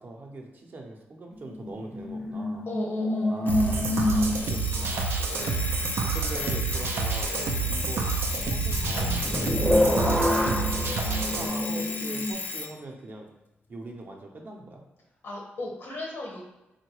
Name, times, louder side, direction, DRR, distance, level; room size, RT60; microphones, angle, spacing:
voice 1, 0.0-2.6 3.3-5.3 6.0-7.3 7.6-9.2 9.8-10.4 11.0-13.3 13.7-14.8, right 2 dB, 50° right, 1 dB, 0.6 m, -41 dB
sound 1, 1.3-4.8 8.4-12.3, left 1 dB, ahead, 0.5 m, -27 dB
voice 2, 2.7-3.5 9.4-9.7 15.2-16.4, left 1 dB, 85° left, -2 dB, 0.9 m, -36 dB
Alarm, 3.5-12.7, left 4 dB, 50° left, 0.4 m, -35 dB
sound 2, 3.5-11.5, right 5 dB, 85° right, 0.3 m, -29 dB
3.7 x 2.1 x 3.0 m, 0.98 s
cardioid pair, 80°, 4 cm